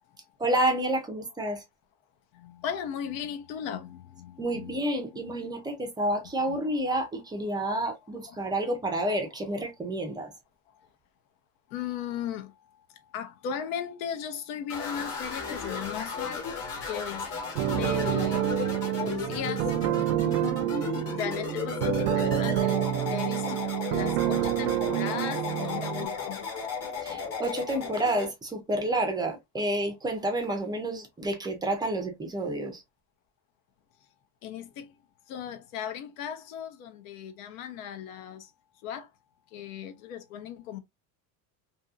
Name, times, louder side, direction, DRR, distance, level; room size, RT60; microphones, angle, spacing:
voice 1, 0.4-1.6 4.4-10.3 27.0-32.8, right 1 dB, 10° right, 0.4 m, -29 dB
voice 2, 2.3-4.7 5.1-5.3 6.5-6.6 7.5-7.6 8.3-8.4 11.7-12.5 13.1-16.5 16.9-17.3 17.7-18.7 19.0-19.7 20.3-20.4 20.8-22.8 23.1-23.6 23.9-26.4 34.4-34.9 35.3-38.5 38.8-39.1 39.5-40.8, left 8 dB, 80° left, 0.8 m, -37 dB
sound 1, 14.7-28.3, left 5 dB, 35° left, 1.2 m, -35 dB
sound 2, 17.5-26.1, right 13 dB, 80° right, 0.6 m, -28 dB
2.7 x 2.7 x 2.4 m
cardioid pair, 145°, 40 cm